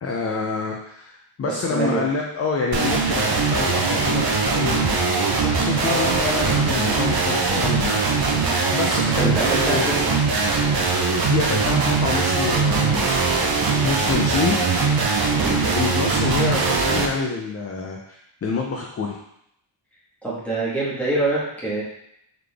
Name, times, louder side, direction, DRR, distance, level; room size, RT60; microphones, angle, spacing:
voice 1, 0.0-8.0 8.7-9.9 11.2-13.1 13.8-14.6 15.4-19.2, left 4 dB, 35° left, 0 dB, 0.4 m, -27 dB
voice 2, 1.4-2.1 6.6-6.8 9.2-10.2 15.3-15.6 20.2-21.8, right 2 dB, 5° left, -9 dB, 1.4 m, -25 dB
sound 1, 2.7-17.1, right 4 dB, 50° right, 0.6 m, -21 dB
3.9 x 3.4 x 3.3 m, 0.75 s
wide cardioid pair, 180°, 49 cm